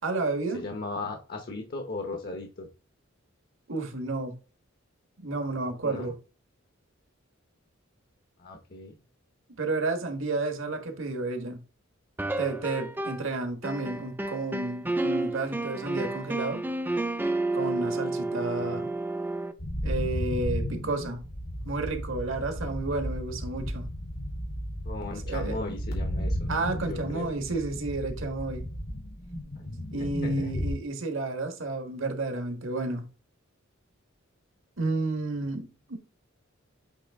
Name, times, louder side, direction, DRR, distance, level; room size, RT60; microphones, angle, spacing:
voice 1, 0.0-0.6 3.7-4.3 5.2-6.2 9.6-11.6 12.4-16.6 17.5-18.9 19.8-21.2 21.6-23.9 25.2-25.6 26.5-28.7 29.9-33.0 34.8-36.0, right 3 dB, 70° right, 1.5 m, -31 dB
voice 2, 0.5-2.7 5.8-6.1 8.4-8.9 18.5-18.8 24.8-26.5 26.9-27.3 29.7-30.5, left 2 dB, 50° left, 1.0 m, -37 dB
sound 1, 12.2-13.3 13.6-19.5, right 2 dB, 10° right, 0.5 m, -31 dB
sound 2, 19.6-30.7, equal, 85° left, 2.7 m, -34 dB
8.3 x 3.3 x 3.5 m
head